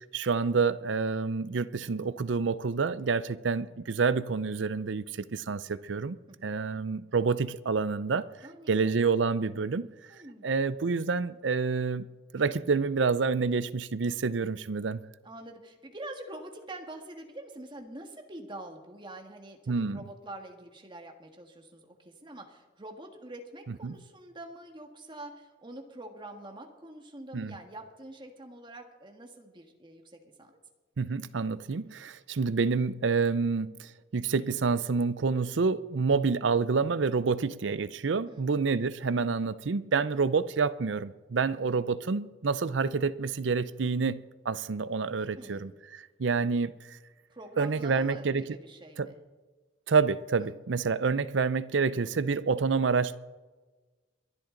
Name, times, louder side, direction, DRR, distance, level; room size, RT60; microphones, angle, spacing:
voice 1, 0.1-6.2 6.4-8.3 8.7-9.9 10.4-12.1 12.3-15.0 19.7-20.0 23.8-23.9 27.3-27.5 31.0-44.2 44.5-47.0 47.6-48.4 49.0-49.1 49.9-53.2, right 4 dB, 75° right, 0.6 m, -28 dB
voice 2, 8.4-8.9 10.1-10.5 15.2-30.6 38.3-38.6 45.3-45.7 47.3-49.2 50.4-50.6, right 1 dB, 25° right, 1.7 m, -45 dB
22.5 x 11.5 x 3.9 m
head